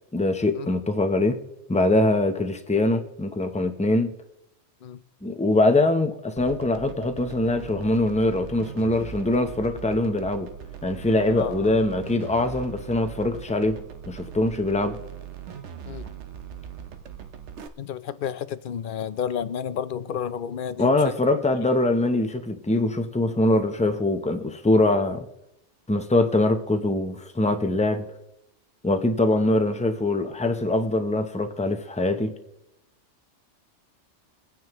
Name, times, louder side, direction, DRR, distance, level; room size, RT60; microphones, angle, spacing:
voice 1, 0.1-1.4 1.7-4.1 5.2-10.5 10.8-13.8 14.1-15.0 20.8-25.3 25.9-28.1 28.8-32.3, left 2 dB, 10° left, 0.5 m, -23 dB
sound 1, 6.4-17.7, right 9 dB, 75° right, 1.1 m, -40 dB
voice 2, 11.3-11.7 15.9-16.1 17.8-21.1, left 8 dB, 60° left, 0.6 m, -31 dB
22.5 x 9.4 x 3.0 m
omnidirectional pair, 1.2 m